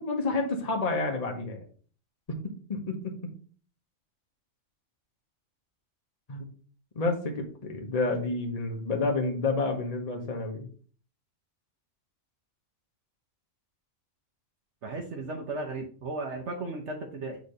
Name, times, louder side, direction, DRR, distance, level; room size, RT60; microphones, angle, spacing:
voice 1, 0.0-1.6 2.4-3.3 6.3-6.4 6.9-10.7, left 3 dB, 30° left, 1 dB, 1.0 m, -30 dB
voice 2, 14.8-17.4, right 2 dB, 65° right, 1 dB, 1.2 m, -35 dB
6.6 x 3.4 x 5.3 m, 0.42 s
omnidirectional pair, 1.3 m